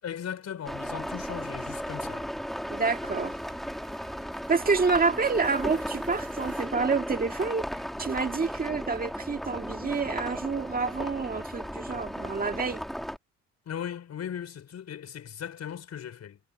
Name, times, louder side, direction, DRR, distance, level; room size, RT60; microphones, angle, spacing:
voice 1, 0.0-2.3 13.7-16.4, left 9 dB, 60° left, 5.4 m, -38 dB
sound 1, 0.7-13.2, equal, ahead, 2.6 m, -35 dB
sound 2, 2.6-7.8, right 7 dB, 50° right, 4.8 m, -56 dB
voice 2, 2.7-3.4 4.5-12.8, right 4 dB, 30° right, 1.8 m, -28 dB
cardioid pair, 90°, 30 cm